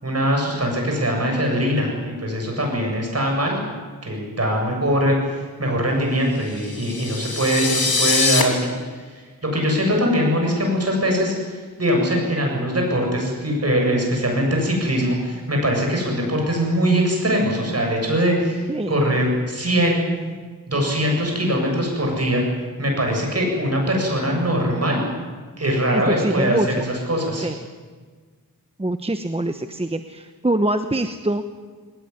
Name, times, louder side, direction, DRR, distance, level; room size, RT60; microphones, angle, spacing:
voice 1, 0.0-3.6 4.0-9.0 9.4-20.0 20.7-22.4 22.8-25.0 25.6-26.6 26.8-27.5, equal, 45° right, 1 dB, 8.0 m, -22 dB
sound 1, 6.5-8.4, left 4 dB, 85° left, 3.0 m, -22 dB
voice 2, 18.7-19.0 25.9-26.8 27.4-27.6 28.8-31.4, right 1 dB, 15° right, 7 dB, 1.0 m, -24 dB
22.0 x 20.0 x 9.7 m, 1.5 s
wide cardioid pair, 95°, 36 cm